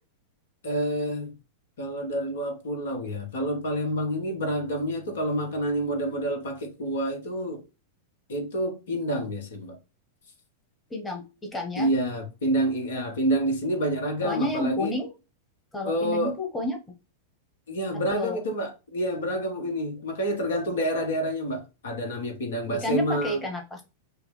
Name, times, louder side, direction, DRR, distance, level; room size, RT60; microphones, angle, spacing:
voice 1, 0.6-1.4 1.8-7.6 8.3-9.8 11.8-14.9 15.8-16.3 17.7-23.4, right 1 dB, 65° left, 1.2 m, -28 dB
voice 2, 10.9-11.9 14.2-15.1 15.7-16.8 18.2-18.5 22.7-23.8, left 1 dB, 15° left, 1.2 m, -30 dB
6.1 x 2.1 x 3.3 m
figure-of-eight pair, 95°, 0 cm